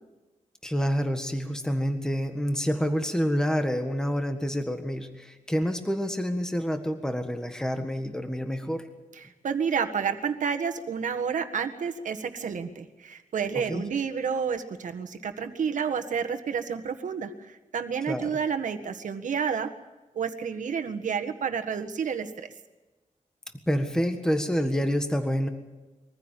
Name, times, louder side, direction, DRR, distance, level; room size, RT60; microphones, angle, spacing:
voice 1, 0.6-8.9 13.7-13.9 18.1-18.4 23.7-25.5, equal, 5° left, 6 dB, 1.6 m, -28 dB
voice 2, 9.2-19.7 20.1-22.5, right 6 dB, 80° right, 7 dB, 1.7 m, -30 dB
23.0 x 15.0 x 9.0 m, 1.1 s
wide cardioid pair, 130°, 13 cm